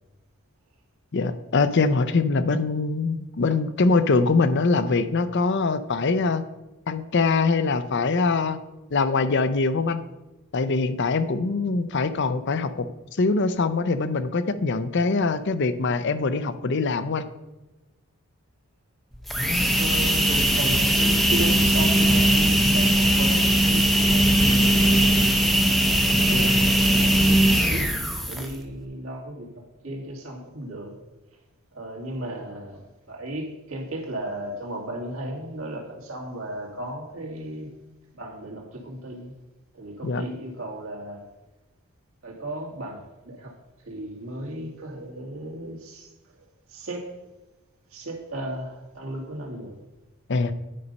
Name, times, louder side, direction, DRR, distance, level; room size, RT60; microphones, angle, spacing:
voice 1, 1.1-6.4 6.9-8.6 8.9-10.0 10.5-12.9 13.1-17.2 26.3-26.6 40.0-40.2 50.3-50.5, left 3 dB, 55° left, 12 dB, 0.6 m, -23 dB
sound 1, 19.1-28.6, right 1 dB, ahead, 0.7 m, -20 dB
voice 2, 19.7-25.3 26.0-27.9 28.2-30.9 31.7-37.7 38.1-39.3 39.7-41.2 42.2-43.5 43.8-46.1 46.7-47.1 47.9-49.7, right 1 dB, 70° right, -1 dB, 2.1 m, -35 dB
9.9 x 5.4 x 5.3 m, 1.0 s
head